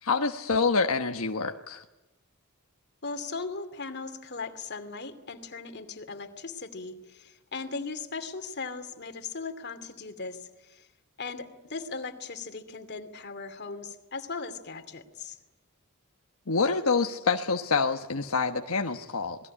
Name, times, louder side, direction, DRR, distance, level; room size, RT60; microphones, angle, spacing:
voice 1, 0.0-1.8 16.5-19.4, left 4 dB, 80° left, 4 dB, 1.3 m, -26 dB
voice 2, 3.0-10.9 11.2-15.4, left 4 dB, 50° left, 8 dB, 2.6 m, -38 dB
27.5 x 20.5 x 9.9 m, 0.98 s
head